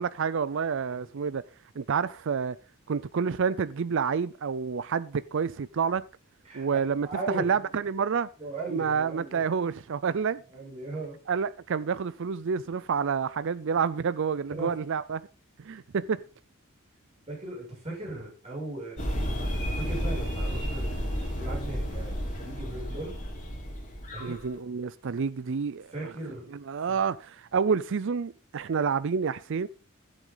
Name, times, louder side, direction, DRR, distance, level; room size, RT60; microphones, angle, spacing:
voice 1, 0.0-1.4 1.8-2.6 2.9-6.0 6.5-8.3 8.7-10.4 11.3-15.2 15.6-16.2 24.2-25.9 26.7-29.7, right 6 dB, 55° right, 0.4 m, -28 dB
voice 2, 7.0-7.6 8.4-9.4 10.5-11.2 14.6-14.7 17.3-23.1 24.1-24.4 25.9-26.5 26.9-27.0, right 2 dB, 30° right, 6.9 m, -38 dB
sound 1, 19.0-24.4, equal, 35° left, 4.2 m, -32 dB
14.0 x 8.2 x 4.0 m
head